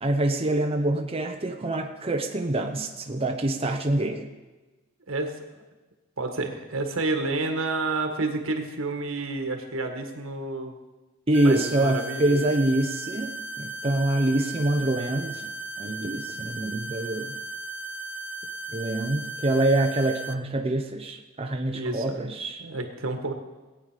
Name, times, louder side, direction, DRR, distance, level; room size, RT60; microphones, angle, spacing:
voice 1, 0.0-4.3 11.3-15.5 15.8-17.4 18.7-22.6, right 1 dB, 30° right, 3 dB, 0.9 m, -25 dB
voice 2, 5.1-5.4 6.2-10.7 11.4-12.5 21.7-22.3 22.6-23.3, right 2 dB, 80° right, 4 dB, 1.8 m, -30 dB
sound 1, 11.3-20.3, right 2 dB, 10° right, 0.5 m, -36 dB
19.0 x 9.1 x 5.1 m, 1.2 s
head